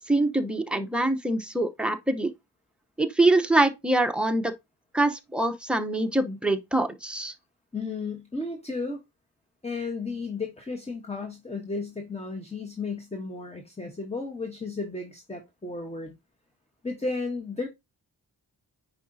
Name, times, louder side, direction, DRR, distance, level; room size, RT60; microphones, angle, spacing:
voice 1, 0.1-2.3 3.0-4.5 4.9-7.3, right 2 dB, 5° right, 0.7 m, -24 dB
voice 2, 7.7-9.0 9.6-16.1 16.8-17.7, left 3 dB, 15° left, 1.0 m, -33 dB
9.0 x 4.8 x 2.7 m
wide cardioid pair, 110°, 41 cm